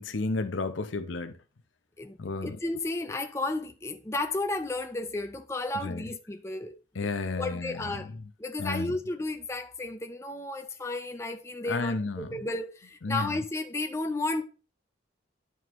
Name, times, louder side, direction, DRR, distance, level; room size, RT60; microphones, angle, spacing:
voice 1, 0.0-1.3 2.2-2.6 5.8-6.0 6.9-7.8 8.6-9.0 11.6-12.4 13.0-13.4, left 3 dB, 80° left, 0.7 m, -32 dB
voice 2, 2.4-7.0 7.4-8.1 8.4-14.4, left 2 dB, 15° left, 0.5 m, -33 dB
11.0 x 4.7 x 3.0 m
head